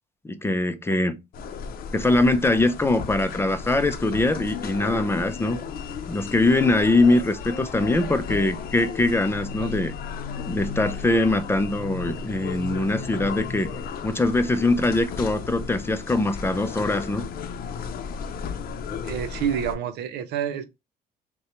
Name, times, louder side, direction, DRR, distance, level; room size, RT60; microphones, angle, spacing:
voice 1, 0.2-1.2 1.9-5.6 6.1-9.9 10.5-13.7 14.0-17.2, left 2 dB, 15° left, 0.5 m, -22 dB
sound 1, 1.3-19.8, left 6 dB, 60° left, 0.7 m, -34 dB
voice 2, 19.0-20.7, right 9 dB, 80° right, 0.7 m, -28 dB
5.5 x 2.3 x 3.0 m
cardioid pair, 110°, 17 cm